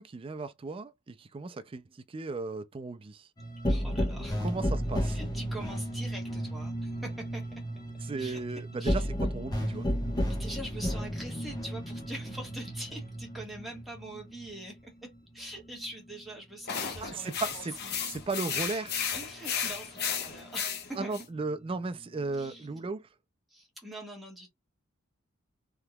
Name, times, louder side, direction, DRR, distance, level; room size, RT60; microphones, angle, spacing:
voice 1, 0.0-3.3 4.4-5.2 8.0-9.0 9.3-9.9 17.0-17.7 18.0-19.1 21.0-23.1, right 3 dB, 25° right, 0.4 m, -36 dB
sound 1, 3.4-16.4 16.7-18.6 18.9-20.6 21.0-22.8, equal, 20° left, 1.0 m, -34 dB
voice 2, 3.7-4.4 5.0-7.5 8.2-8.4 8.8-9.1 9.6-9.7 10.2-18.1 19.1-21.2 22.4-22.7 23.5-24.5, right 1 dB, ahead, 1.4 m, -44 dB
sound 2, 16.7-21.2, left 7 dB, 50° left, 0.9 m, -34 dB
3.5 x 2.8 x 2.2 m
head